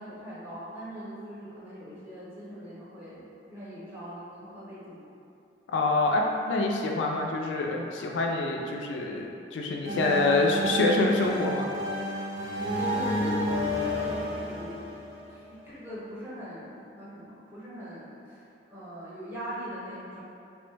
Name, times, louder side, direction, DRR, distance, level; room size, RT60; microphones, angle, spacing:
voice 1, 0.0-5.1 9.8-10.2 12.9-14.9 15.3-16.7 17.0-18.4 18.7-20.2, equal, 15° right, -10 dB, 0.7 m, -40 dB
voice 2, 5.7-11.7, left 2 dB, 75° left, 0 dB, 0.3 m, -26 dB
sound 1, 9.8-15.6, equal, 80° right, 0.6 m, -31 dB
3.1 x 2.0 x 3.2 m, 2.5 s
head